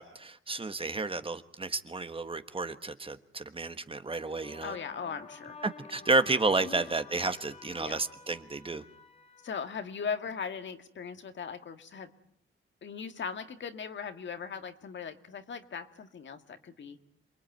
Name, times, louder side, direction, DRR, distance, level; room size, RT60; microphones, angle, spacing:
voice 1, 0.0-4.8 5.6-8.8, right 3 dB, 25° right, 1.4 m, -31 dB
sound 1, 4.1-10.4, left 4 dB, 30° left, 3.1 m, -51 dB
voice 2, 4.6-5.6 6.6-6.8 7.8-8.0 9.4-12.1 12.8-17.0, left 6 dB, 60° left, 2.0 m, -39 dB
27.5 x 22.0 x 9.3 m
cardioid pair, 105°, 21 cm